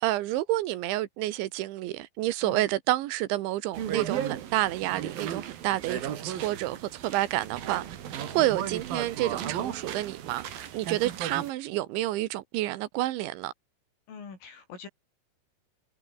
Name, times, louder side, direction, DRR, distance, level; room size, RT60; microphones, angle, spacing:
voice 1, 0.0-7.9 8.3-13.5, right 15 dB, 80° right, 3.3 m, -29 dB
sound 1, 3.7-11.5, right 10 dB, 55° right, 3.5 m, -35 dB
voice 2, 14.1-14.9, left 5 dB, 85° left, 9.3 m, -44 dB
omnidirectional pair, 5.6 m